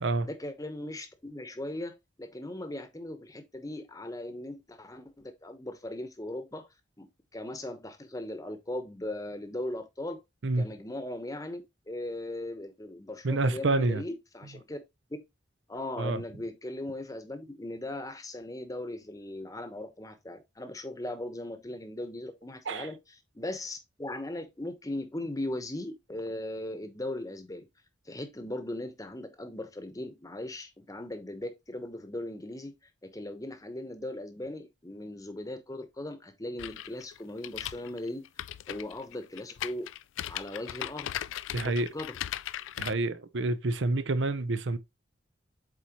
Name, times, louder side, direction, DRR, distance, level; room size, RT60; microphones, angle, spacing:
voice 1, 0.2-6.7 7.0-7.1 7.3-10.2 10.6-14.8 15.1-15.2 15.7-23.0 23.3-27.7 28.1-32.7 33.0-38.3 38.7-39.9 40.2-41.1 41.5-42.1, left 1 dB, 20° left, 1.0 m, -38 dB
voice 2, 13.2-14.0 16.0-16.2 22.7-22.9 41.5-41.9 42.8-44.8, right 2 dB, 70° right, 0.7 m, -28 dB
sound 1, 36.6-42.9, left 12 dB, 80° left, 0.3 m, -38 dB
7.9 x 4.2 x 3.0 m
head